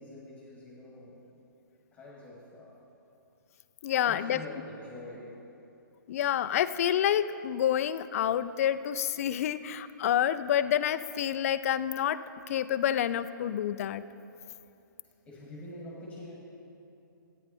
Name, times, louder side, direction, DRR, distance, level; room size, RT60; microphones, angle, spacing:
voice 1, 0.0-1.4 1.9-2.8 3.8-5.4 15.0-16.3, left 1 dB, 10° left, -4 dB, 1.8 m, -46 dB
voice 2, 3.8-4.4 6.1-12.2 12.5-14.0, left 10 dB, 45° left, 13 dB, 0.4 m, -28 dB
13.5 x 9.1 x 4.2 m, 2.8 s
hypercardioid pair, 145°, 11 cm